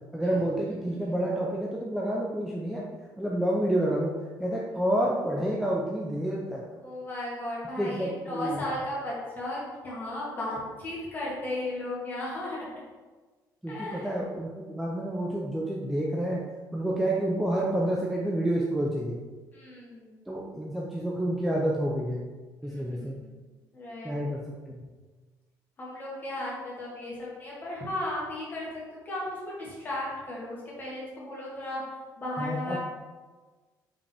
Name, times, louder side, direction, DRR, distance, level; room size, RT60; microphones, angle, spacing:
voice 1, 0.1-2.8 3.2-4.1 4.4-6.6 7.8-8.6 13.6-16.4 16.7-19.2 20.3-22.3 22.6-23.2 24.0-24.4 24.7-24.9 32.4-32.8, right 1 dB, ahead, -3 dB, 0.4 m, -29 dB
voice 2, 0.7-1.1 6.8-12.7 13.7-14.1 19.5-20.2 22.6-23.3 23.7-24.2 25.8-28.7 28.9-31.8 32.2-32.8, left 1 dB, 25° left, -6 dB, 1.8 m, -35 dB
5.4 x 5.3 x 3.4 m, 1.3 s
cardioid pair, 180°, 8 cm